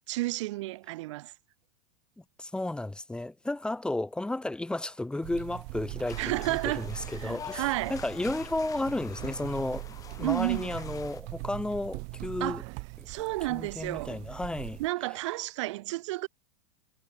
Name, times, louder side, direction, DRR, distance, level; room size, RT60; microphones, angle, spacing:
voice 1, 0.1-1.3 6.2-6.9 7.2-7.9 10.2-10.7 12.4-12.6 13.1-14.1 14.8-16.3, right 19 dB, 65° right, 1.3 m, -31 dB
voice 2, 2.4-12.6 13.0-13.1 13.5-14.8, left 2 dB, 5° left, 1.5 m, -33 dB
sound 1, 5.2-14.9, right 37 dB, 45° right, 0.7 m, -41 dB
sound 2, 6.1-11.2, left 8 dB, 20° left, 0.8 m, -46 dB
supercardioid pair, 130°, 17 cm